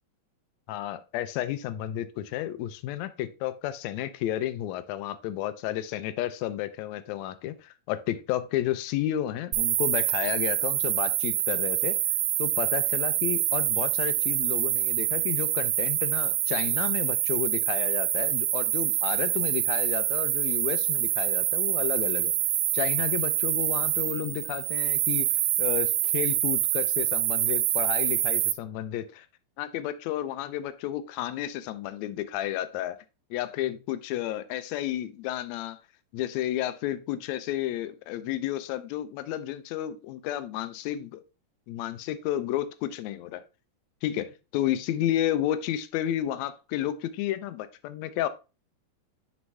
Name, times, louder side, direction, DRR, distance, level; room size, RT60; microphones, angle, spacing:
voice 1, 0.7-12.0 12.4-22.3 22.7-29.3 29.6-33.0 33.3-35.8 36.1-41.2 41.7-43.4 44.0-48.3, left 12 dB, 85° left, 12 dB, 1.5 m, -31 dB
sound 1, 9.5-28.5, right 14 dB, 80° right, 1.9 m, -26 dB
9.4 x 3.5 x 3.2 m, 0.30 s
omnidirectional pair, 3.8 m